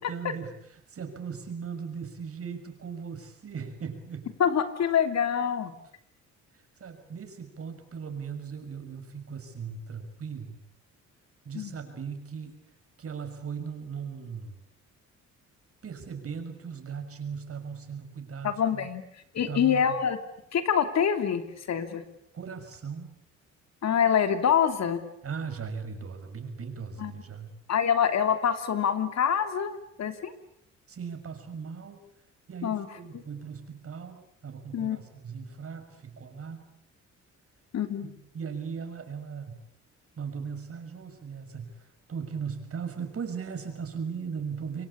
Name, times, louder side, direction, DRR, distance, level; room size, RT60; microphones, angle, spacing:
voice 1, 0.0-4.3 6.8-10.6 11.4-12.5 13.0-14.6 15.8-18.9 19.5-20.0 22.3-23.1 25.2-27.5 30.9-32.0 32.5-36.7 38.0-39.6 40.2-44.9, right 6 dB, 50° right, 7 dB, 6.3 m, -38 dB
voice 2, 4.4-5.7 11.5-11.7 18.4-19.0 19.3-20.2 20.5-22.0 23.8-25.0 27.0-27.1 27.7-30.3 32.6-32.9 34.7-35.0 37.7-38.1, left 8 dB, 60° left, 9 dB, 3.0 m, -25 dB
28.0 x 23.0 x 8.6 m, 0.70 s
cardioid pair, 90°, 30 cm